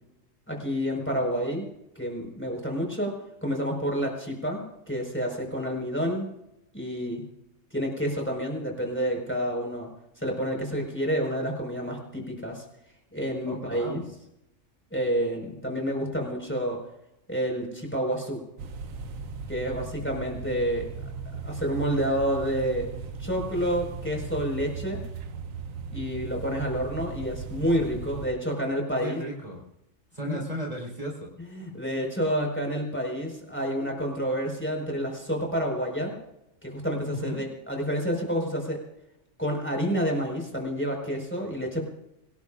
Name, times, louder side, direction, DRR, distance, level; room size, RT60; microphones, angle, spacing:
voice 1, 0.5-1.7 1.9-3.1 3.4-6.3 6.7-7.2 7.7-9.9 10.2-12.6 13.1-14.0 14.9-16.8 17.3-18.4 19.5-20.9 21.4-22.9 23.2-25.0 25.9-29.2 30.2-30.4 31.4-36.1 36.6-38.8 39.4-41.8, equal, 10° left, 0 dB, 5.0 m, -29 dB
voice 2, 13.4-14.1 29.0-29.6 30.1-31.3 37.1-37.4, equal, 30° right, -2 dB, 4.3 m, -35 dB
sound 1, 18.6-28.3, right 4 dB, 90° right, 1.3 m, -37 dB
25.5 x 18.5 x 2.5 m, 0.86 s
omnidirectional pair, 1.4 m